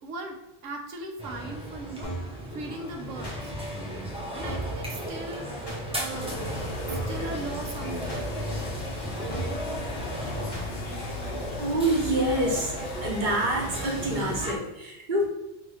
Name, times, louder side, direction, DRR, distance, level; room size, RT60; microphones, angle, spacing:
voice 1, 0.0-3.5 4.3-6.4 6.9-8.2, right 2 dB, 80° right, 2 dB, 1.0 m, -39 dB
sound 1, 1.2-14.6, right 1 dB, 10° right, 0.4 m, -35 dB
sound 2, 2.0-2.4 3.2-3.4 4.1-4.2 4.4-4.8 5.7-5.8 6.6-6.7 6.9-7.2 8.1-8.2 9.0-9.1 9.3-9.6 10.5-10.7 11.4-11.5, right 1 dB, 25° left, 0.7 m, -36 dB
sound 3, 6.1-14.4, left 4 dB, 70° left, 0.8 m, -38 dB
voice 2, 11.6-12.7 13.0-15.3, right 1 dB, 45° right, -2 dB, 0.9 m, -26 dB
3.0 x 2.7 x 4.1 m, 0.93 s
omnidirectional pair, 1.3 m